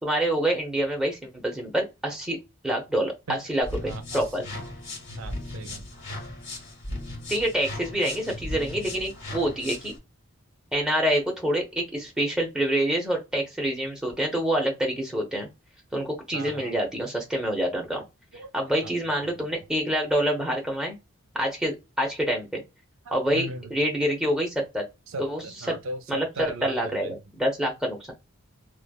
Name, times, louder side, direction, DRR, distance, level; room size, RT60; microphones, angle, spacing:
voice 1, 0.0-4.4 7.3-9.9 10.7-15.5 15.9-18.0 18.5-21.0 21.3-22.6 23.1-24.8 25.2-25.8 26.1-28.1, right 1 dB, 5° right, 0.8 m, -27 dB
sound 1, 3.6-10.0, left 1 dB, 55° left, 1.2 m, -37 dB
voice 2, 3.8-4.6 5.2-5.8 16.3-16.7 18.3-18.5 18.8-18.9 23.1-23.7 25.1-27.2, right 1 dB, 70° right, 0.5 m, -38 dB
3.2 x 2.3 x 2.2 m
head